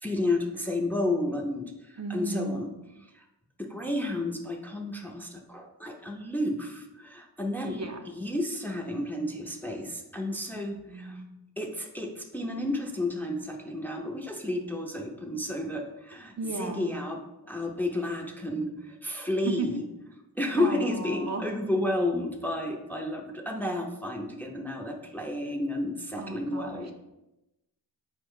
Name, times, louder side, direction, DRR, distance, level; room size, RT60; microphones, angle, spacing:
voice 1, 0.0-2.7 3.1-3.2 3.6-11.2 11.6-19.8 20.3-26.9, left 1 dB, 5° left, 1 dB, 0.5 m, -31 dB
voice 2, 2.0-2.6 7.6-8.0 10.7-11.3 16.4-16.9 19.4-19.7 20.6-21.5 26.2-26.9, right 3 dB, 40° right, 3 dB, 0.5 m, -35 dB
4.6 x 2.2 x 4.6 m, 0.94 s
wide cardioid pair, 55°, 40 cm